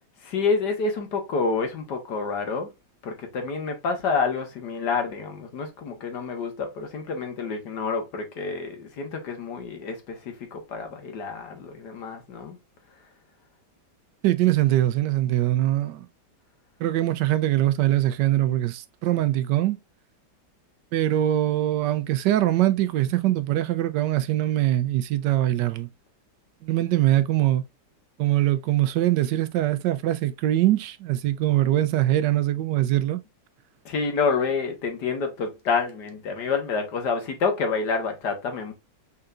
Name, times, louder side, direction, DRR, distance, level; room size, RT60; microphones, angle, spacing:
voice 1, 0.2-2.7 3.0-12.6 33.9-38.7, left 4 dB, 75° left, 1.9 m, -28 dB
voice 2, 14.2-16.0 16.8-19.8 20.9-25.9 26.6-27.6 28.2-33.2, right 14 dB, 85° right, 1.2 m, -22 dB
5.6 x 3.8 x 2.4 m
omnidirectional pair, 1.8 m